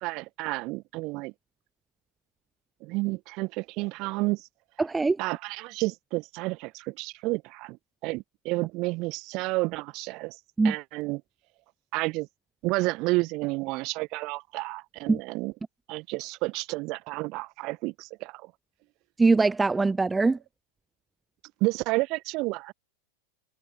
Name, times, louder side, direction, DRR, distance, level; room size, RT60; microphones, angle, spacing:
voice 1, 0.0-1.3 2.8-4.5 5.2-7.8 8.0-10.4 10.6-11.2 11.9-12.3 12.6-15.5 15.9-18.5 21.6-22.7, right 23 dB, 40° right, 1.1 m, -30 dB
voice 2, 4.8-5.2 10.6-10.7 15.1-15.2 19.2-20.4, right 3 dB, 10° right, 0.4 m, -22 dB
figure-of-eight pair, 90°, 0 cm